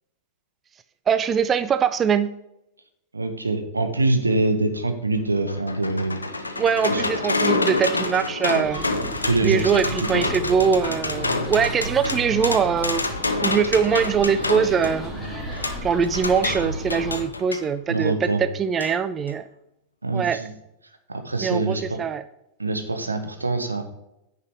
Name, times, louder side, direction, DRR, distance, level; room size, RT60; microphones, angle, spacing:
voice 1, 1.1-2.3 6.6-8.8 9.4-13.0 13.4-15.1 15.8-19.4 20.1-20.4 21.4-22.2, right 6 dB, 25° right, 12 dB, 0.4 m, -22 dB
voice 2, 3.1-6.2 6.9-7.0 9.2-10.2 17.9-18.4 20.0-20.5 21.1-22.0 22.6-23.8, right 2 dB, 80° right, 6 dB, 1.2 m, -24 dB
sound 1, 5.1-17.7 18.8-18.9 19.3-19.4, left 2 dB, 80° left, 0.9 m, -28 dB
sound 2, 8.6-17.2, equal, 5° right, 2.8 m, -34 dB
9.8 x 5.8 x 4.8 m, 0.85 s
figure-of-eight pair, 90°, 0 cm